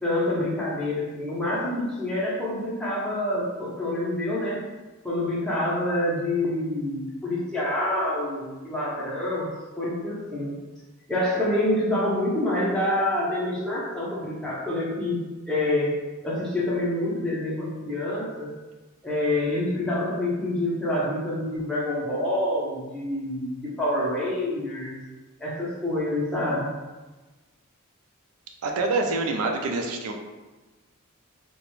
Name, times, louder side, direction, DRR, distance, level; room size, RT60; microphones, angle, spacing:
voice 1, 0.0-4.6 5.0-9.5 9.8-10.5 11.1-15.9 16.2-18.5 19.0-25.0 25.4-26.7, left 1 dB, 5° left, -7 dB, 0.5 m, -27 dB
voice 2, 28.6-30.1, right 3 dB, 75° right, 3 dB, 0.4 m, -26 dB
2.4 x 2.1 x 3.0 m, 1.2 s
head